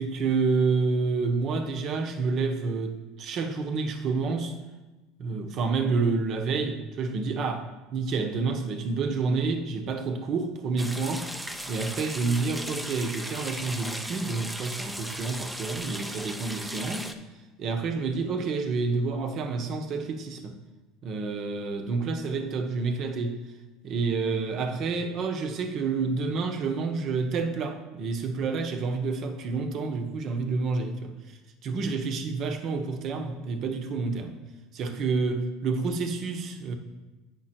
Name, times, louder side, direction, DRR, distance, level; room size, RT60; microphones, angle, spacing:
voice 1, 0.0-4.5 5.2-11.3 11.7-17.1 17.6-20.6 21.0-23.4 23.8-31.1 31.6-34.4 34.7-36.7, right 4 dB, 50° right, 6 dB, 1.1 m, -29 dB
sound 1, 10.8-17.1, equal, 5° right, 0.7 m, -37 dB
8.9 x 5.7 x 4.4 m, 1.2 s
supercardioid pair, 110°, 0 cm